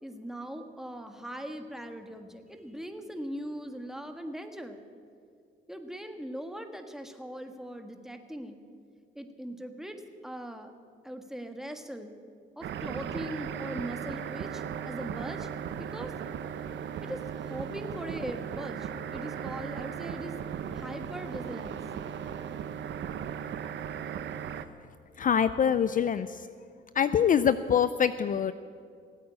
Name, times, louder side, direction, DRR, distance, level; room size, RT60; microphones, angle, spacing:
voice 1, 0.0-4.8 5.7-8.6 9.1-10.7 11.0-12.1 12.6-15.5 15.8-16.1 17.0-20.4 20.7-21.8, equal, ahead, 6 dB, 1.5 m, -40 dB
sound 1, 12.6-24.6, right 8 dB, 65° right, 0.9 m, -37 dB
voice 2, 25.2-26.5 26.9-28.5, left 8 dB, 45° left, 13 dB, 0.5 m, -25 dB
18.0 x 8.7 x 8.8 m, 2.3 s
cardioid pair, 90°, 20 cm